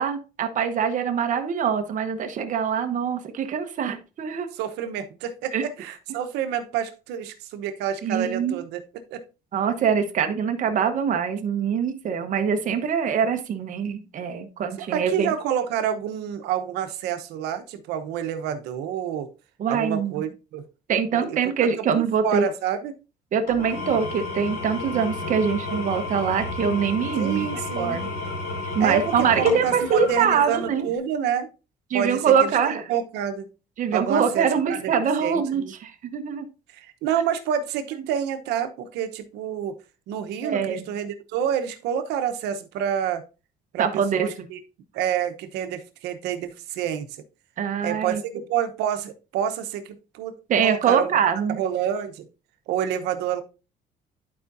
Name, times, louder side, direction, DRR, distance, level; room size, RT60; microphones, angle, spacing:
voice 1, 0.0-4.5 5.5-5.6 8.0-8.6 9.5-15.3 19.6-20.3 20.9-22.4 23.3-27.5 27.8-28.1 28.7-30.9 31.9-32.9 33.8-36.5 40.4-40.9 43.8-44.5 47.6-48.2 50.5-51.6, right 7 dB, 50° right, 6 dB, 1.1 m, -24 dB
voice 2, 4.5-8.8 9.1-9.2 14.8-19.3 19.7-20.6 21.1-21.4 21.8-22.9 27.2-28.0 28.8-31.5 31.9-32.5 32.9-33.5 33.9-34.9 35.2-35.7 36.7-39.7 40.1-43.2 43.7-44.6 44.9-47.1 47.8-50.3 50.6-51.1 51.5-52.3 52.7-53.4, right 9 dB, 90° right, 9 dB, 1.0 m, -28 dB
Engine / Tools, 23.5-30.9, left 3 dB, 65° left, 2.7 m, -32 dB
11.0 x 4.9 x 2.7 m, 0.31 s
cardioid pair, 110°, 17 cm